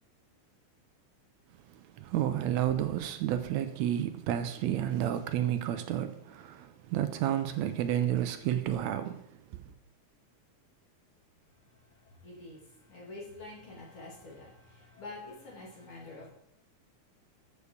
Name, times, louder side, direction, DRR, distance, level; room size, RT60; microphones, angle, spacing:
voice 1, 1.7-9.2 9.5-9.6, right 11 dB, 75° right, 1.7 m, -31 dB
voice 2, 12.2-16.3, left 2 dB, 45° left, 2.8 m, -47 dB
7.0 x 6.6 x 6.7 m
omnidirectional pair, 3.5 m